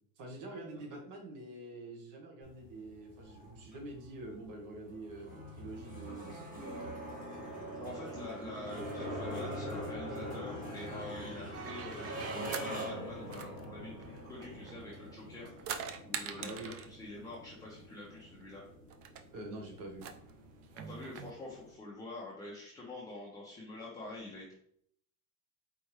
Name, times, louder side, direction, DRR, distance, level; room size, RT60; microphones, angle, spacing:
voice 1, 0.2-6.9 16.4-16.7 19.3-20.1, right 2 dB, 55° right, 1 dB, 1.5 m, -46 dB
sound 1, 2.4-21.7, equal, 20° right, 1.3 m, -44 dB
voice 2, 7.8-15.7 16.0-18.7 20.7-24.5, left 2 dB, 10° left, -6 dB, 0.7 m, -46 dB
sound 2, 11.5-12.7 13.3-15.0 15.3-17.0 18.1-18.2 18.4-18.5 18.9-19.2 19.9-21.3, right 8 dB, 40° right, 0.4 m, -43 dB
4.5 x 3.4 x 3.1 m, 0.65 s
cardioid pair, 155°, 39 cm